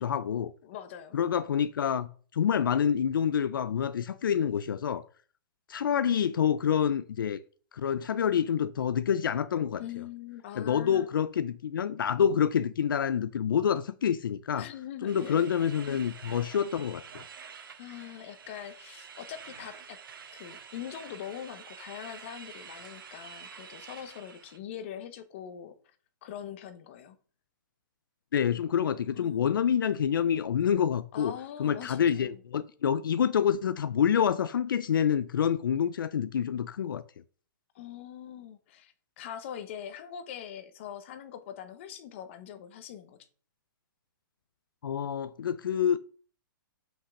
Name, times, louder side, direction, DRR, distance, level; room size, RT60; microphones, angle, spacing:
voice 1, 0.0-0.5 1.1-5.0 5.7-7.4 7.7-9.8 10.6-14.7 15.0-17.2 28.3-31.3 31.6-37.0 44.8-46.0, left 8 dB, 70° left, 0.6 m, -27 dB
voice 2, 0.6-1.2 9.8-11.1 14.6-15.5 17.8-20.0 20.3-25.7 26.2-27.2 29.1-29.8 31.1-32.4 37.7-43.3, left 10 dB, 35° left, 1.1 m, -43 dB
sound 1, 15.1-24.6, right 6 dB, 80° right, 1.7 m, -48 dB
5.9 x 5.6 x 6.3 m
hypercardioid pair, 165°, 11 cm